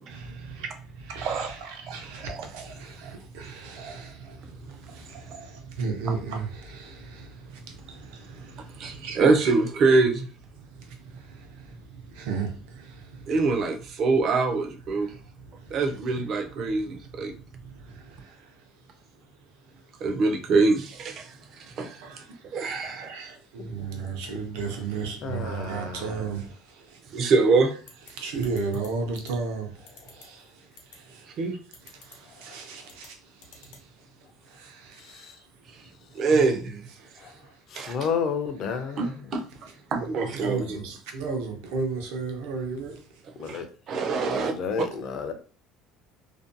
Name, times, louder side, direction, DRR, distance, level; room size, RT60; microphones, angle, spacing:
voice 1, 0.1-9.5 10.6-13.4 14.9-16.0 16.6-18.7 19.7-20.1 21.3-27.3 28.1-31.5 31.8-36.4 37.0-37.6 38.7-39.0 40.1-43.6, right 4 dB, 80° right, 0.6 m, -36 dB
voice 2, 1.9-2.6 3.0-3.1 3.8-4.3 5.1-5.4 8.3-10.3 13.3-15.1 15.7-17.3 20.0-22.0 22.4-23.1 27.1-27.8 31.4-31.6 36.1-36.9 37.7-38.0 39.0-39.4 39.9-40.8 43.4-44.5, right 3 dB, 35° right, 0.4 m, -25 dB
voice 3, 25.2-26.1 32.5-32.6 35.1-35.3 37.2-37.3 37.7-39.1 43.4-43.7 44.2-45.3, left 6 dB, 35° left, 0.4 m, -31 dB
sound 1, 27.9-28.1 28.4-28.9 29.2-29.3 29.9-30.2 30.8-31.0 31.7-32.2 32.8-33.1 33.4-33.8, left 5 dB, 80° left, 0.8 m, -48 dB
2.5 x 2.2 x 2.5 m
cardioid pair, 175°, 0 cm